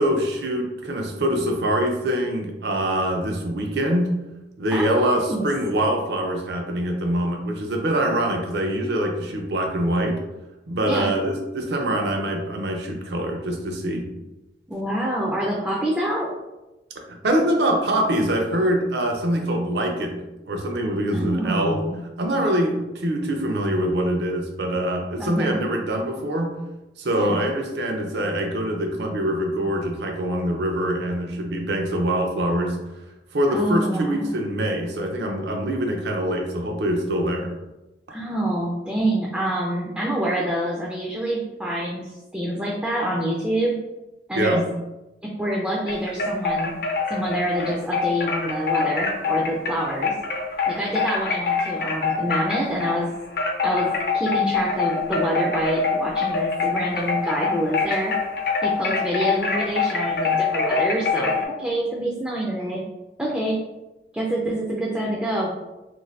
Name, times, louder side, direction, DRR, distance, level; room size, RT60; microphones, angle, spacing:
voice 1, 0.0-4.1 4.6-10.2 10.7-14.1 17.1-21.8 22.2-26.5 27.0-32.8 33.3-37.5 44.4-44.7, right 1 dB, 75° right, 2 dB, 0.5 m, -24 dB
voice 2, 4.7-5.5 10.9-11.1 14.7-16.3 21.1-22.0 25.2-25.6 27.1-27.4 33.5-34.3 38.1-43.7 44.3-44.6 45.2-46.7 47.1-50.1 50.7-53.1 53.6-58.1 58.6-62.8 63.2-63.6 64.1-65.5, right 1 dB, 5° right, -4 dB, 0.3 m, -26 dB
sound 1, 45.9-53.0 53.3-61.4, left 4 dB, 55° left, 0.5 m, -24 dB
2.6 x 2.6 x 3.2 m, 1.0 s
head